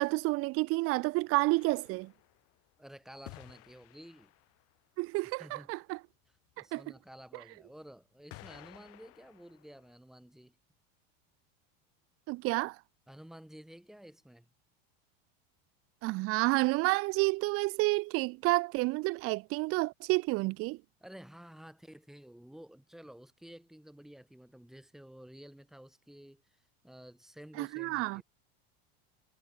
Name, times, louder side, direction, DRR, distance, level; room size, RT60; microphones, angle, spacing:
voice 1, 0.0-2.1 5.0-6.0 6.7-6.8 12.3-12.7 16.0-20.8 27.6-28.2, right 23 dB, 45° right, 1.2 m, -30 dB
sound 1, 1.5-2.7 3.2-4.8 7.1-7.2 8.3-9.9, left 22 dB, 50° left, 4.8 m, -54 dB
voice 2, 2.8-4.3 5.4-5.7 6.3-10.6 13.1-14.5 21.0-26.4 26.8-28.2, equal, ahead, 4.4 m, -52 dB
supercardioid pair, 145°, 30 cm